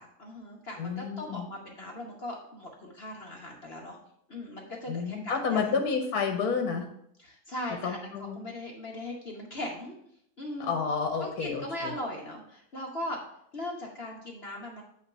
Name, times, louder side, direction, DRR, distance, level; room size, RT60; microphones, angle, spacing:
voice 1, 0.0-4.0 4.3-5.7 7.2-9.9 10.4-10.7 11.2-13.2 13.5-14.8, left 1 dB, 45° left, -1 dB, 1.0 m, -39 dB
voice 2, 0.8-1.4 4.9-6.9 7.8-8.4 10.6-11.9, left 5 dB, 65° left, 3 dB, 1.3 m, -30 dB
8.6 x 3.1 x 5.5 m, 0.72 s
omnidirectional pair, 1.8 m